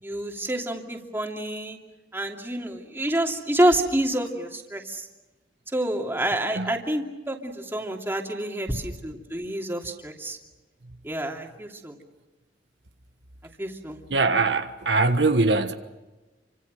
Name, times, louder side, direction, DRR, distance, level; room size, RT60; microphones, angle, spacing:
voice 1, 0.0-1.8 2.1-5.1 5.7-10.4 11.0-12.0 13.6-14.0, right 1 dB, 15° right, 2.8 m, -28 dB
voice 2, 14.1-15.7, right 3 dB, 85° right, 1.4 m, -22 dB
29.0 x 25.5 x 6.5 m
head